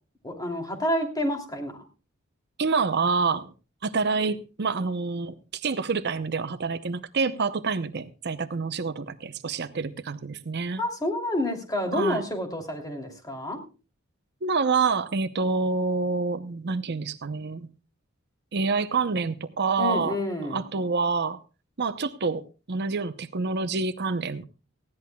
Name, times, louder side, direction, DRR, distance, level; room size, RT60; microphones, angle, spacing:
voice 1, 0.2-1.8 10.8-13.6 19.8-20.6, left 1 dB, 20° left, 4 dB, 2.8 m, -29 dB
voice 2, 2.6-3.5 3.8-10.8 11.9-12.2 14.4-17.7 18.5-20.2 20.5-21.4 21.8-24.4, right 4 dB, 55° right, 11 dB, 0.7 m, -27 dB
19.0 x 15.0 x 2.3 m, 0.33 s
head